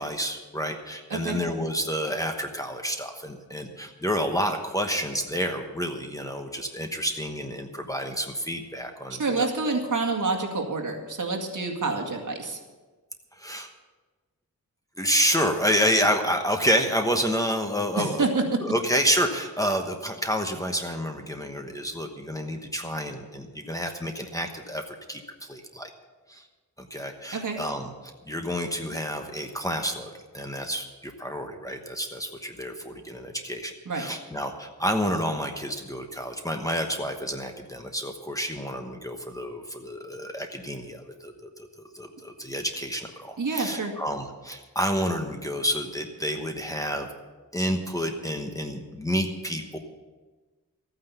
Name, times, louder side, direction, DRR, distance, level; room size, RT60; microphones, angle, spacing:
voice 1, 0.0-9.5 13.4-13.7 15.0-18.3 18.6-24.8 25.1-25.9 26.3-26.4 26.8-27.9 28.3-41.3 41.9-47.1 47.5-49.8, equal, 10° left, 4 dB, 1.1 m, -29 dB
voice 2, 9.1-12.6 18.0-18.6 27.3-27.6 33.9-34.0 43.4-43.9, right 3 dB, 60° right, 2 dB, 2.1 m, -27 dB
14.0 x 9.5 x 6.9 m, 1.3 s
wide cardioid pair, 140°, 35 cm